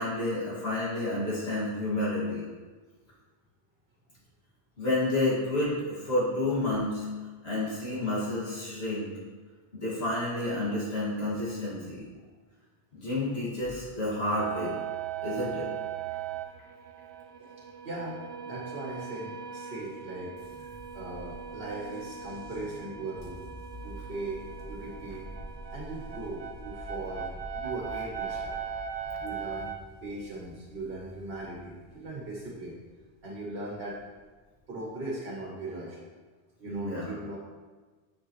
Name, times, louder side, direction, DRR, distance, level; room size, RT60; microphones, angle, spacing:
voice 1, 0.0-2.4 4.8-7.1 7.4-9.1 9.7-12.0 12.9-14.7 15.2-15.7 36.6-37.2, left 2 dB, 75° left, -8 dB, 2.6 m, -30 dB
sound 1, 14.4-29.8, right 8 dB, 85° right, 0.9 m, -39 dB
voice 2, 17.4-20.4 20.9-23.5 23.8-25.3 25.7-28.6 29.2-29.7 30.0-32.8 33.2-34.0 34.7-36.0 36.6-37.4, right 2 dB, 65° right, -4 dB, 1.4 m, -39 dB
sound 2, 20.4-34.6, equal, 40° right, 1.6 m, -48 dB
7.3 x 6.6 x 3.2 m, 1.4 s
omnidirectional pair, 1.1 m